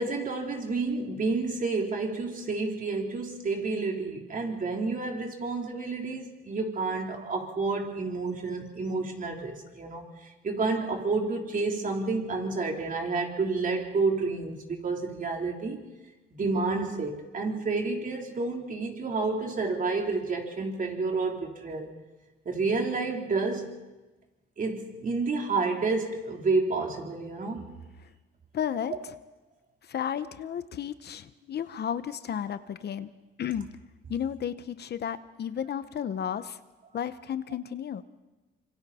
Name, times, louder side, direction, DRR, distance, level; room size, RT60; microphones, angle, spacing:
voice 1, 0.0-15.8 16.4-21.9 22.5-23.8 24.6-27.7 28.9-29.0, right 3 dB, 45° right, 1 dB, 3.9 m, -30 dB
voice 2, 28.5-28.9 29.8-33.8 34.1-36.6 36.9-38.0, left 9 dB, 55° left, 13 dB, 0.9 m, -33 dB
26.0 x 24.5 x 4.3 m, 1.1 s
cardioid pair, 90°, 20 cm